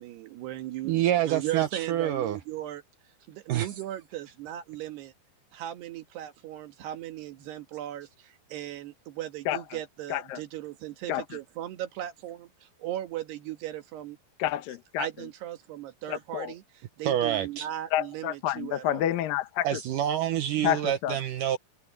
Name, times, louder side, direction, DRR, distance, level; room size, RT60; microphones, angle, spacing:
voice 1, 0.0-2.8 3.3-5.1 5.5-14.2 15.0-16.6 17.0-19.1, right 13 dB, 85° right, 3.7 m, -37 dB
voice 2, 0.8-2.4 3.5-3.7 17.1-17.7 19.6-21.6, right 11 dB, 70° right, 2.1 m, -27 dB
voice 3, 10.1-10.4 11.1-11.2 14.4-15.1 16.1-16.5 17.9-19.7 20.6-21.2, left 12 dB, 70° left, 2.5 m, -29 dB
omnidirectional pair, 4.6 m